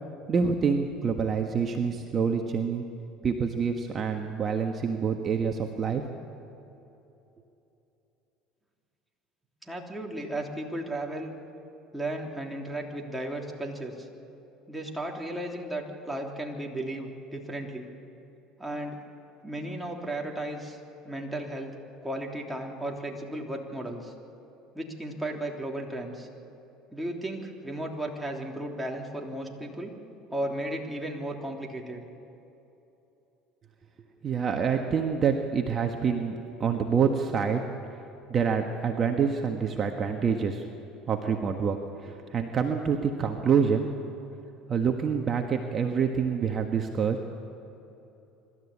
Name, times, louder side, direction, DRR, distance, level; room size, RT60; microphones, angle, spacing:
voice 1, 0.3-2.8 3.2-6.0 34.2-36.3 36.6-37.6 38.3-40.6 41.1-41.8 42.0-43.9 44.7-47.2, right 6 dB, 40° right, 3 dB, 1.5 m, -26 dB
voice 2, 9.6-11.3 11.9-14.1 14.7-17.9 18.6-19.0 19.4-20.8 21.0-21.8 22.0-24.1 24.7-26.3 26.9-29.9 30.3-32.0, right 1 dB, 5° right, 0 dB, 3.2 m, -35 dB
25.5 x 13.0 x 8.6 m, 2.9 s
supercardioid pair, 95°, 0 cm